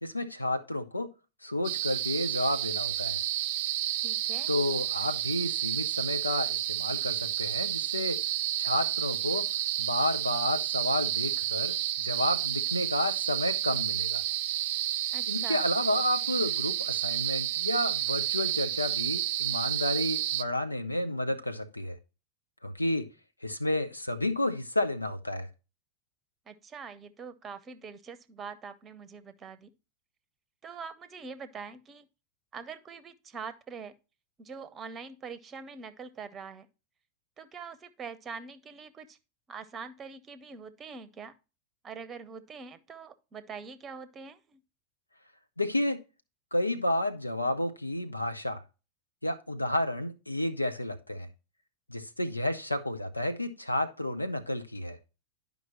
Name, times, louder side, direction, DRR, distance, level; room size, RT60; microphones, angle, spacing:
voice 1, 0.0-1.1 1.4-3.2 4.5-8.2 8.6-9.5 9.8-14.2 15.3-22.0 22.6-23.1 23.4-25.5 45.6-46.0 46.5-48.6 49.2-51.3 51.9-55.0, left 1 dB, 85° left, 0.8 m, -31 dB
sound 1, 1.6-20.4, right 13 dB, 50° right, 0.4 m, -30 dB
voice 2, 4.0-4.5 15.1-15.6 26.5-29.7 30.6-32.1 32.5-33.9 34.4-36.7 37.4-39.2 39.5-41.3 41.8-44.6, right 5 dB, 25° right, 0.8 m, -44 dB
11.0 x 5.3 x 3.0 m
figure-of-eight pair, 90°, 0 cm